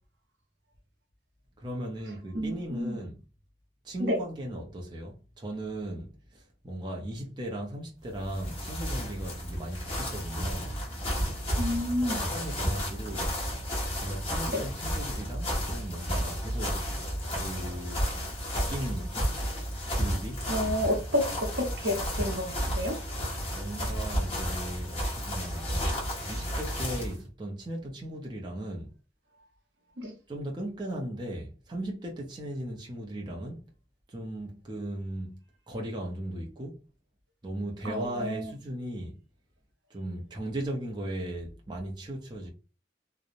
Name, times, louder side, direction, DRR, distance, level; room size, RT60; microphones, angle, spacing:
voice 1, 1.6-3.2 3.8-10.7 12.0-13.3 13.9-16.8 17.3-18.1 18.5-19.3 19.9-20.5 23.5-26.0 26.3-28.9 30.3-33.6 34.1-35.4 35.7-36.8 37.4-39.2 39.9-42.5, right 1 dB, 25° right, 0.5 m, -37 dB
voice 2, 2.3-3.0 4.0-4.2 11.6-12.2 14.5-14.6 20.5-22.5 22.8-22.9 30.0-30.1 37.8-38.5, left 1 dB, 75° right, 0.8 m, -29 dB
sound 1, 8.1-27.2, equal, 30° left, 1.0 m, -32 dB
2.8 x 2.0 x 2.5 m
head